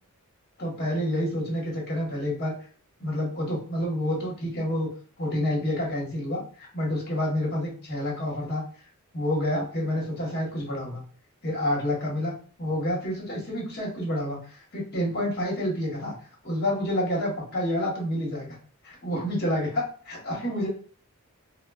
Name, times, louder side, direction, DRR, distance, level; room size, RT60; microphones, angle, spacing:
voice 1, 0.6-2.5 3.0-4.9 5.2-8.6 9.1-11.0 11.4-12.3 12.6-16.1 16.4-18.5 18.8-20.7, left 1 dB, 50° left, -2 dB, 1.2 m, -28 dB
3.6 x 2.1 x 2.3 m, 0.42 s
head